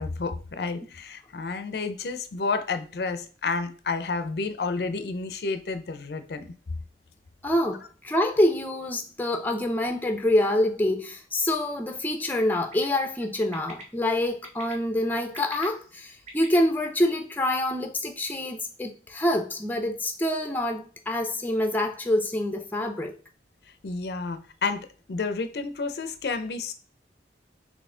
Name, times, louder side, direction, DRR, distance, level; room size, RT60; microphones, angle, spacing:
voice 1, 0.0-6.5 23.7-26.7, left 4 dB, 65° left, 0.5 m, -30 dB
voice 2, 7.4-23.1, left 1 dB, 10° left, 0.5 m, -26 dB
Bird, 12.5-12.8 13.5-13.8 14.4-14.7 15.2-16.6, right 2 dB, 40° right, 1.1 m, -44 dB
4.1 x 3.1 x 3.7 m
head